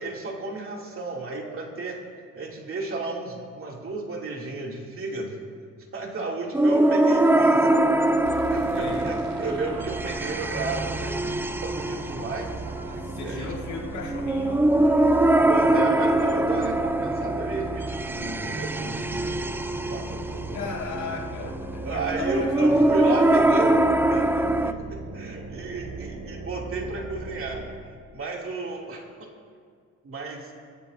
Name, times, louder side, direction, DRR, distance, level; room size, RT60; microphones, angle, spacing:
voice 1, 0.0-2.0 2.3-5.4 5.9-7.7 8.0-12.5 12.8-13.5 14.8-20.7 21.4-23.8 24.1-27.7 28.1-29.3 30.0-30.5, right 3 dB, 45° right, -1 dB, 2.7 m, -33 dB
sound 1, 6.5-24.7, right 1 dB, 5° right, 0.4 m, -23 dB
sound 2, 7.2-13.1, right 2 dB, 85° right, 3.2 m, -48 dB
sound 3, 8.2-27.9, right 3 dB, 65° right, 1.9 m, -38 dB
voice 2, 8.7-9.2 13.0-14.7 20.5-22.9, left 4 dB, 70° left, 0 dB, 2.1 m, -36 dB
23.5 x 13.0 x 2.7 m, 2.1 s
cardioid pair, 90°, 30 cm